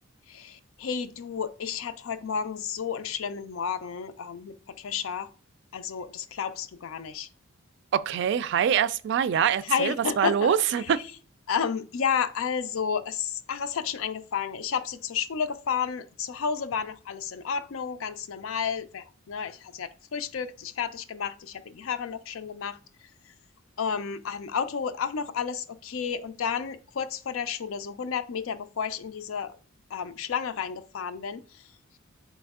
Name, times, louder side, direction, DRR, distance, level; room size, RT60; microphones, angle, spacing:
voice 1, 0.3-5.3 5.7-7.3 9.6-10.9 11.5-22.8 23.8-29.6 29.9-31.4, left 6 dB, 80° left, 0.4 m, -31 dB
voice 2, 7.9-11.0, right 8 dB, 60° right, 0.3 m, -24 dB
4.2 x 3.1 x 3.6 m
head